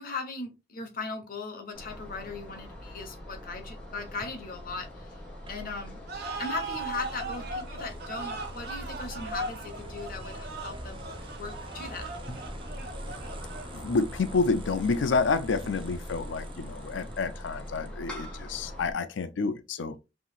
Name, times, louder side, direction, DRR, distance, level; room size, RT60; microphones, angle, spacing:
voice 1, 0.0-5.2 5.5-6.0 6.4-11.0 11.4-12.4, left 3 dB, 50° left, 1.0 m, -38 dB
sound 1, 1.7-18.9, left 1 dB, 5° left, 1.4 m, -43 dB
sound 2, 5.5-18.2, right 1 dB, 30° right, 0.5 m, -46 dB
sound 3, 6.1-13.9, right 3 dB, 55° right, 1.1 m, -39 dB
voice 2, 13.7-20.0, left 4 dB, 70° left, 0.5 m, -29 dB
5.5 x 3.0 x 2.4 m
head